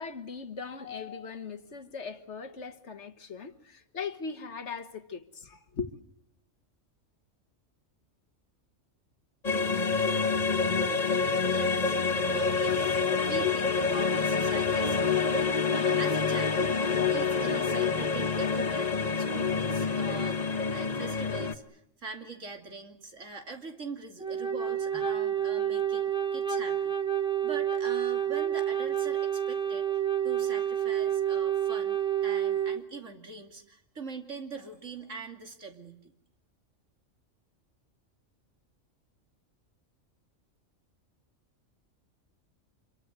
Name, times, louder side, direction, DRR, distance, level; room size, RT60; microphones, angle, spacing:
voice 1, 0.0-5.9, left 5 dB, 60° left, 1.7 m, -39 dB
sound 1, 9.4-21.5, left 5 dB, 35° left, 1.3 m, -27 dB
voice 2, 11.2-12.0 12.2-26.9 27.4-36.1, right 4 dB, 70° right, 3.0 m, -43 dB
Wind instrument woodwind instrument, 24.2-32.8, right 10 dB, 5° right, 1.4 m, -29 dB
26.5 x 23.0 x 8.1 m
omnidirectional pair, 1.3 m